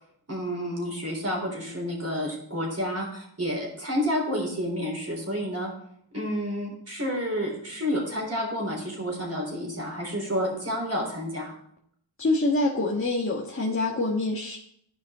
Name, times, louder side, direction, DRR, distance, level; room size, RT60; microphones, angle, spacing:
voice 1, 0.3-5.7 6.1-11.5, equal, 30° right, -1 dB, 3.5 m, -30 dB
voice 2, 12.2-14.6, left 2 dB, 25° left, -3 dB, 1.4 m, -25 dB
12.5 x 5.3 x 3.6 m, 0.69 s
cardioid pair, 60°, 47 cm